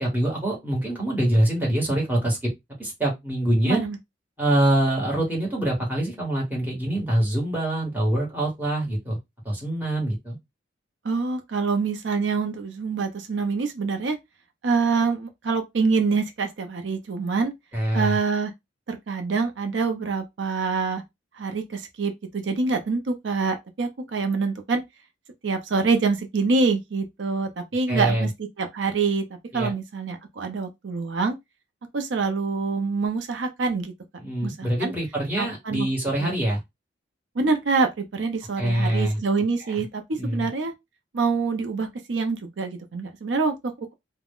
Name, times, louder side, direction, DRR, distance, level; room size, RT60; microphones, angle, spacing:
voice 1, 0.0-2.5 2.8-3.8 4.4-9.2 9.4-10.4 17.7-18.2 27.9-28.3 29.5-29.7 34.2-36.6 38.6-39.2 40.2-40.5, right 1 dB, 10° right, 1.2 m, -24 dB
voice 2, 3.6-4.0 11.0-14.2 14.6-17.5 17.9-18.5 18.9-21.0 21.4-24.8 25.4-28.3 28.6-29.2 29.5-31.4 31.9-33.9 34.4-34.9 35.4-35.9 36.2-36.3 37.4-40.7 41.1-43.9, right 4 dB, 80° right, 0.5 m, -25 dB
2.4 x 2.1 x 3.5 m
head